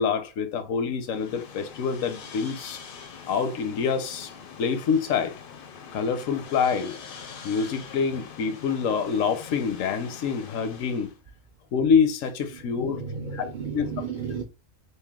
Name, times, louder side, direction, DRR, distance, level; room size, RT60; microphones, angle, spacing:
voice 1, 0.0-2.8 3.3-4.3 4.6-5.4 5.9-7.0 7.4-11.1 11.7-13.0 13.3-13.4 13.7-13.9, left 6 dB, 75° left, 1.0 m, -26 dB
sound 1, 1.1-11.2, left 6 dB, 55° left, 0.6 m, -44 dB
voice 2, 12.5-14.4, right 6 dB, 60° right, 0.5 m, -34 dB
3.2 x 2.6 x 3.5 m
omnidirectional pair, 1.4 m